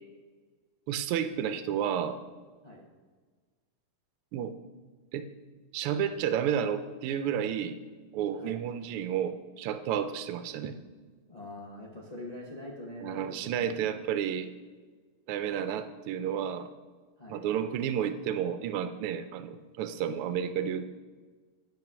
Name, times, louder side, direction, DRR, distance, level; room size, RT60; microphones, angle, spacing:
voice 1, 0.9-2.2 4.3-4.5 5.1-5.2 5.7-7.8 8.1-10.8 13.0-14.5 15.3-16.7 17.3-20.9, right 9 dB, 85° right, 10 dB, 1.5 m, -31 dB
voice 2, 11.3-13.9 17.2-17.4, left 1 dB, 45° left, -2 dB, 0.5 m, -44 dB
11.0 x 5.1 x 6.0 m, 1.4 s
omnidirectional pair, 2.4 m